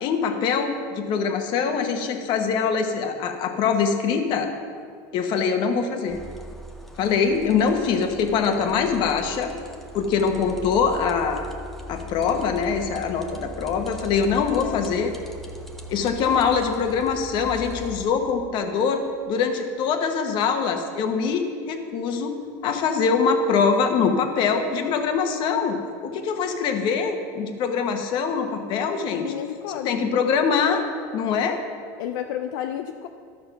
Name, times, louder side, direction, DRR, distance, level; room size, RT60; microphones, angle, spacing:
voice 1, 0.0-4.5 5.1-6.2 7.0-9.5 9.9-11.5 11.9-15.1 15.9-19.0 19.3-22.3 22.6-25.8 26.0-29.3 29.8-30.8 31.1-31.6, left 6 dB, 50° left, 5 dB, 1.2 m, -23 dB
sound 1, 6.1-18.1, equal, ahead, 0.8 m, -40 dB
voice 2, 14.5-14.8 29.1-29.9 32.0-33.1, left 10 dB, 80° left, 6 dB, 0.5 m, -31 dB
12.5 x 6.4 x 5.9 m, 2.3 s
supercardioid pair, 140°, 10 cm